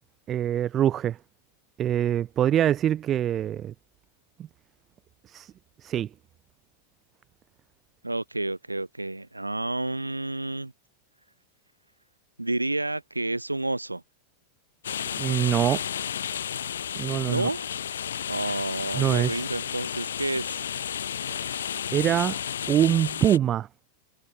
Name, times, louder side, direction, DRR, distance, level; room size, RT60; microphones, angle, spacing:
voice 1, 0.3-1.2 1.8-3.7 5.3-5.5 5.8-6.1 15.2-15.8 17.0-17.5 18.9-19.4 21.9-22.4 22.7-23.7, right 11 dB, 30° right, 0.3 m, -24 dB
voice 2, 8.0-10.7 12.4-14.0 17.3-17.7 18.3-20.7, right 2 dB, 85° right, 0.5 m, -30 dB
sound 1, 14.8-23.4, left 9 dB, 65° left, 0.7 m, -32 dB
figure-of-eight pair, 90°, 0 cm